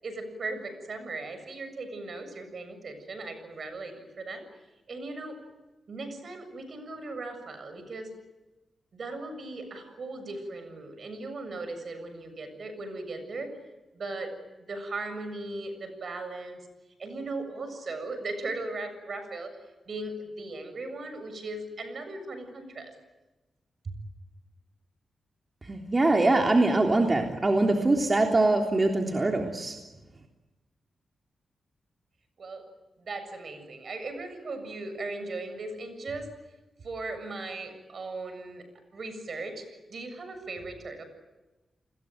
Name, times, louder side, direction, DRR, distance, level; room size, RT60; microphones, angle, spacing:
voice 1, 0.0-4.4 4.9-5.4 5.9-8.1 8.9-13.5 13.9-14.3 14.7-16.6 17.0-19.5 19.9-22.9 23.8-23.9 32.4-32.6 33.0-36.3 36.8-38.6 38.9-39.6 39.9-41.0, right 2 dB, 60° right, 9 dB, 7.4 m, -38 dB
voice 2, 25.6-29.8, right 2 dB, 30° right, 2 dB, 3.4 m, -23 dB
29.5 x 21.5 x 9.3 m, 1.1 s
cardioid pair, 55°, 0 cm